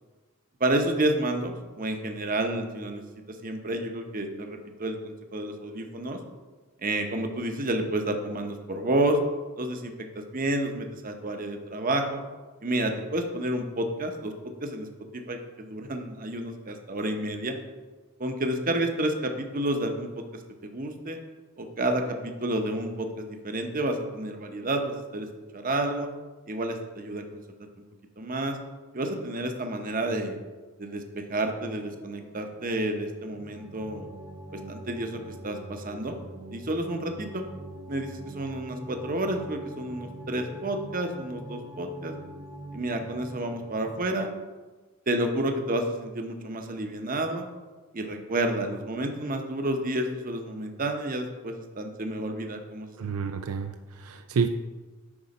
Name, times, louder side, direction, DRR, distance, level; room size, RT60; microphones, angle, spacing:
voice 1, 0.6-6.2 6.8-9.2 9.6-12.2 12.6-14.3 14.6-14.9 15.1-17.6 18.2-20.2 20.6-21.2 21.6-25.3 25.5-26.1 26.5-27.2 28.2-28.6 28.9-30.4 30.8-34.1 34.5-36.2 36.5-37.4 37.9-42.1 42.7-44.3 45.1-47.5 47.9-53.3, right 1 dB, 40° right, 5 dB, 0.9 m, -30 dB
sound 1, 31.5-44.1, right 1 dB, 5° right, 0.9 m, -44 dB
voice 2, 53.0-54.5, right 5 dB, 80° right, 7 dB, 0.4 m, -29 dB
9.8 x 4.0 x 5.3 m, 1.3 s
head